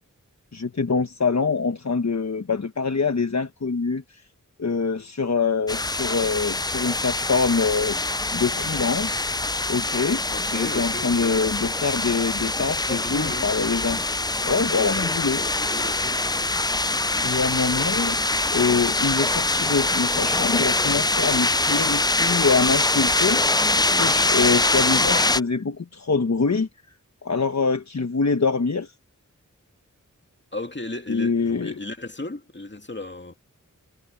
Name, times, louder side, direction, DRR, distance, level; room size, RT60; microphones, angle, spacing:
voice 1, 0.5-4.2 4.6-9.3 9.7-10.2 10.5-14.0 14.4-15.4 17.2-18.1 18.5-23.4 23.8-26.7 27.2-28.9 31.1-31.7, left 4 dB, 55° left, 1.2 m, -24 dB
sound 1, 5.7-25.4, left 2 dB, 15° left, 0.4 m, -24 dB
voice 2, 10.3-11.5 12.8-13.5 14.8-16.2 25.0-25.4 30.5-33.4, left 2 dB, 35° left, 2.5 m, -35 dB
wide cardioid pair, 45°, 33 cm